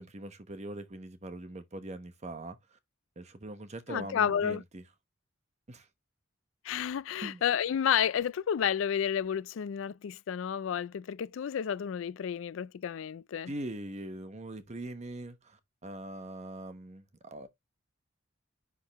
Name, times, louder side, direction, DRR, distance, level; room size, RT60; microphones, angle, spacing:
voice 1, 0.0-2.8 3.2-4.8 5.7-5.9 7.2-7.4 13.5-17.1 17.3-17.5, right 1 dB, 35° right, 1.0 m, -42 dB
voice 2, 3.9-4.6 6.6-13.5, left 8 dB, 75° left, 0.3 m, -31 dB
10.0 x 3.7 x 2.9 m
head